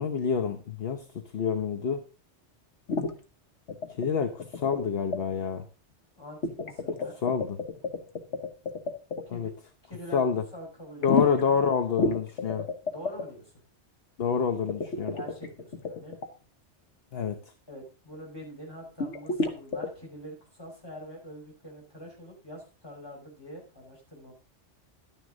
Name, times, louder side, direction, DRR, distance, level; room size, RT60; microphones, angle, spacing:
voice 1, 0.0-2.0 4.0-5.6 7.2-7.6 9.3-9.5 10.1-10.4 11.0-12.7 14.2-15.1 17.1-17.4, left 6 dB, 60° left, 8 dB, 1.0 m, -27 dB
sound 1, 2.9-3.1 3.7-4.1 4.4-4.8 5.1-5.2 6.4-9.2 11.0-11.5 12.0-13.3 14.7-16.3 19.0-19.9, left 3 dB, 75° left, 1.4 m, -30 dB
voice 2, 6.2-7.2 9.3-9.5 9.8-10.2 10.5-11.6 12.9-13.5 15.1-16.2 17.7-24.3, equal, 20° left, -1 dB, 5.6 m, -44 dB
12.5 x 9.6 x 3.9 m, 0.34 s
omnidirectional pair, 1.2 m